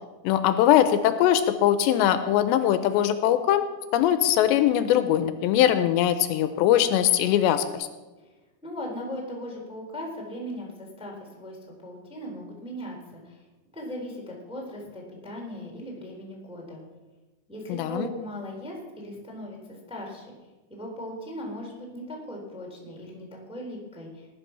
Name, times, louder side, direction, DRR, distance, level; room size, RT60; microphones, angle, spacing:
voice 1, 0.2-3.6 3.9-7.6 17.7-18.1, left 11 dB, 85° left, 10 dB, 3.0 m, -21 dB
voice 2, 8.6-11.6 11.8-13.4 13.7-16.8 17.5-19.6 19.9-20.3 20.7-24.3, equal, ahead, -1 dB, 3.2 m, -38 dB
19.5 x 10.5 x 6.0 m, 1.2 s
omnidirectional pair, 5.0 m